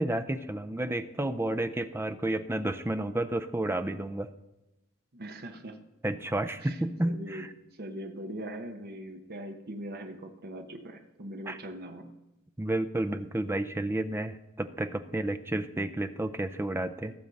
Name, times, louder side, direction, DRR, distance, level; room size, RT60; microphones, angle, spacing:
voice 1, 0.0-4.3 6.0-7.5 11.5-11.6 12.6-17.1, right 1 dB, 10° right, 10 dB, 0.5 m, -31 dB
voice 2, 5.1-5.8 6.6-7.5 7.8-12.1, right 1 dB, 45° right, 5 dB, 1.1 m, -41 dB
17.5 x 7.2 x 4.0 m, 0.97 s
head